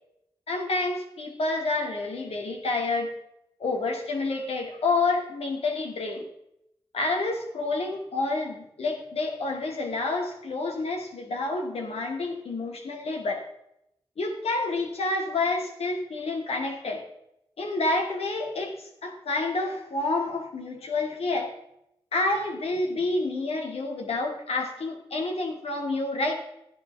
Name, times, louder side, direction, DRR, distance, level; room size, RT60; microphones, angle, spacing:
voice 1, 0.5-3.1 3.6-6.3 6.9-13.4 14.2-17.1 17.6-21.5 22.1-26.3, left 3 dB, 75° left, 2 dB, 2.4 m, -29 dB
14.0 x 10.5 x 3.6 m, 0.80 s
cardioid pair, 50°, 10 cm